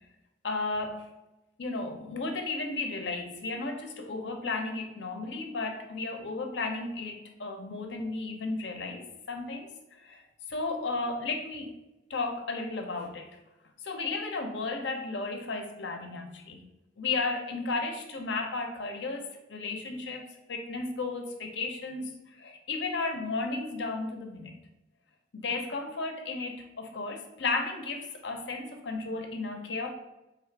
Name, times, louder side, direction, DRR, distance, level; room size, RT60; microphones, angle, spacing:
voice 1, 0.4-1.1 1.6-10.2 10.5-11.7 12.1-13.3 13.8-16.6 17.0-19.2 19.5-24.6 25.3-29.9, left 3 dB, 70° left, 4 dB, 0.6 m, -34 dB
3.5 x 2.4 x 4.5 m, 0.98 s
head